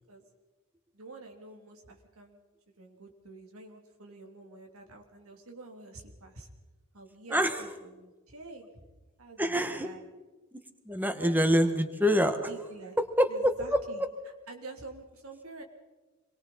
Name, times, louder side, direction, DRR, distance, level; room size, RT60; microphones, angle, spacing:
voice 1, 0.9-2.4 2.7-6.5 6.9-8.8 9.2-10.0 11.2-11.6 12.5-13.0 13.3-14.0 14.5-15.6, right 3 dB, 85° right, 2 dB, 3.1 m, -48 dB
voice 2, 7.3-7.6 9.4-9.9 10.5-10.6 10.8-12.5 13.0-13.8, equal, 10° right, 8 dB, 1.5 m, -26 dB
27.5 x 23.0 x 4.3 m, 1.2 s
head